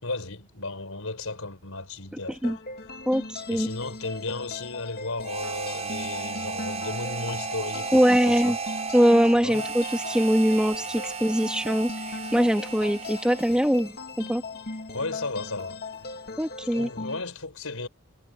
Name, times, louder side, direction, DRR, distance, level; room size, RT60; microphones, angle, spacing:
voice 1, 0.0-2.6 3.5-8.6 9.4-9.6 14.9-15.8 16.7-17.9, left 3 dB, 80° left, 4.6 m, -34 dB
sound 1, 2.4-17.2, left 3 dB, 45° left, 2.5 m, -39 dB
voice 2, 3.1-3.7 7.9-8.6 8.9-14.4 16.4-16.9, equal, 5° right, 2.3 m, -22 dB
Harmonica, 5.2-13.9, right 5 dB, 30° right, 8.0 m, -35 dB
head